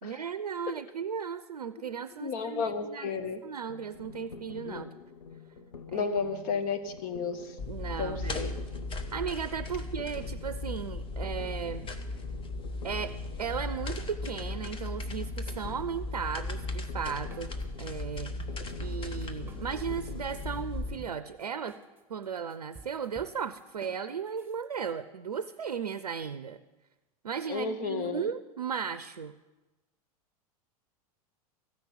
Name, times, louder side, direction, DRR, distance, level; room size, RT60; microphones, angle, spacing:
voice 1, 0.0-3.2 3.4-4.9 5.9-6.1 7.7-8.5 9.1-11.9 12.8-17.5 17.8-18.4 18.8-21.8 22.1-26.6 27.2-29.3, right 7 dB, 90° right, 13 dB, 0.5 m, -36 dB
voice 2, 2.2-3.4 4.6-4.9 5.9-7.6 8.0-8.6 27.5-28.3, left 5 dB, 45° left, 9 dB, 1.4 m, -33 dB
sound 1, 3.7-21.2, left 6 dB, 85° left, 0.8 m, -48 dB
sound 2, 7.6-20.9, left 2 dB, 25° left, 1.2 m, -37 dB
sound 3, 16.2-17.9 18.1-24.9, right 4 dB, 10° right, 1.4 m, -52 dB
14.5 x 5.9 x 9.4 m, 1.1 s
hypercardioid pair, 95°, 19 cm